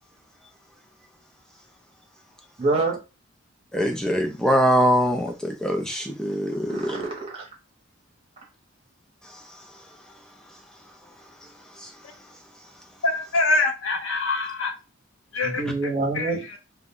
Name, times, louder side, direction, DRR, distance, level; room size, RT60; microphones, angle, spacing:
voice 1, 2.6-3.0 6.7-7.5 15.4-16.4, right 3 dB, 25° right, 0.8 m, -26 dB
voice 2, 3.7-7.0, equal, 5° left, 0.4 m, -23 dB
voice 3, 13.0-14.7 15.3-15.6 16.1-16.6, left 3 dB, 65° left, 0.6 m, -24 dB
2.4 x 2.1 x 3.5 m
head